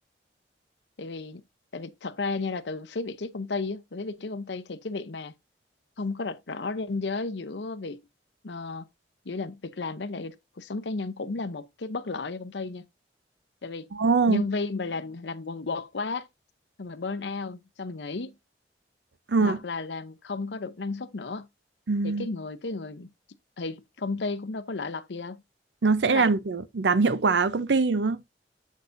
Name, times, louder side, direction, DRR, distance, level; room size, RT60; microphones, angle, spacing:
voice 1, 1.0-1.4 1.7-5.3 6.0-8.0 8.4-8.9 9.2-12.9 13.6-13.9 14.3-16.3 16.8-18.3 19.4-21.5 22.0-23.1 23.6-25.4 26.1-26.3, left 3 dB, 80° left, 0.7 m, -33 dB
voice 2, 13.9-14.4 19.3-19.6 21.9-22.3 25.8-28.2, right 4 dB, 80° right, 0.6 m, -23 dB
8.2 x 6.5 x 2.6 m
head